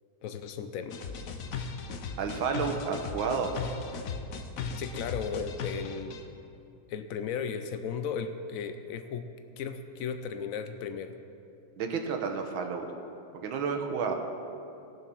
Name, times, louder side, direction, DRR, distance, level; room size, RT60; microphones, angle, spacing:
voice 1, 0.2-1.0 4.8-6.3 6.9-9.3 9.6-11.1, left 6 dB, 80° left, 9 dB, 0.7 m, -35 dB
sound 1, 0.9-6.2, left 5 dB, 60° left, 1.0 m, -37 dB
voice 2, 2.2-3.5 11.8-12.9 13.4-14.2, right 5 dB, 85° right, 4 dB, 1.8 m, -31 dB
18.0 x 6.9 x 6.1 m, 2.6 s
omnidirectional pair, 2.2 m